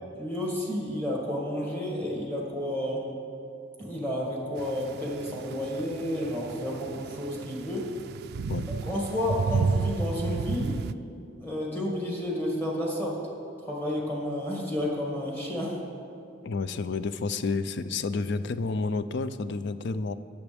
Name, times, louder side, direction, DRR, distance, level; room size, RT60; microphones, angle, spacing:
voice 1, 0.1-3.0 3.8-7.9 8.6-10.8 11.4-13.2 13.6-15.8, left 1 dB, 10° left, -3 dB, 2.1 m, -31 dB
sound 1, 4.6-10.9, right 4 dB, 55° right, 0.3 m, -32 dB
voice 2, 16.4-20.1, left 4 dB, 60° left, 12 dB, 0.4 m, -30 dB
21.0 x 7.0 x 3.5 m, 2.5 s
head